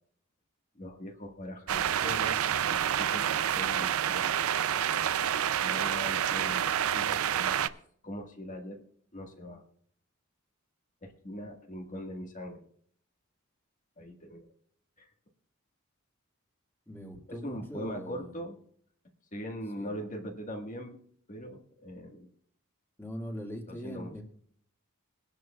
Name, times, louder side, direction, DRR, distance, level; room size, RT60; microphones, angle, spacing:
voice 1, 0.8-2.4 2.7-4.4 5.6-7.7 8.0-8.8 9.1-9.6 11.0-12.7 14.0-14.5 15.0-15.1 17.3-18.6 19.3-21.0 21.3-22.3 23.7-24.1, equal, 40° left, 3 dB, 1.6 m, -41 dB
sound 1, 1.7-7.7, right 9 dB, 90° right, 0.5 m, -28 dB
voice 2, 16.9-18.4 19.8-19.9 23.0-24.2, equal, 10° left, 1 dB, 1.9 m, -41 dB
22.5 x 10.5 x 2.3 m, 0.62 s
head